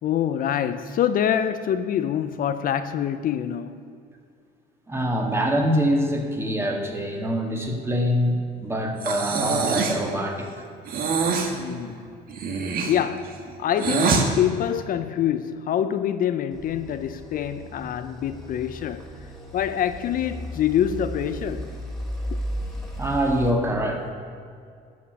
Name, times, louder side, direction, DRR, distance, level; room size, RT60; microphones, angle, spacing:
voice 1, 0.0-3.8 11.5-12.1 12.9-13.3 13.6-19.1 19.5-21.7 22.3-22.4, left 10 dB, 55° left, 0.6 m, -25 dB
voice 2, 4.9-10.5 23.0-24.1, equal, 15° right, 2.2 m, -24 dB
Breathing, 9.0-10.1 10.9-11.5 12.3-14.3, right 5 dB, 60° right, 1.8 m, -24 dB
sound 1, 16.5-23.5, equal, 5° left, 2.4 m, -35 dB
13.0 x 6.4 x 9.4 m
cardioid pair, 110°, 17 cm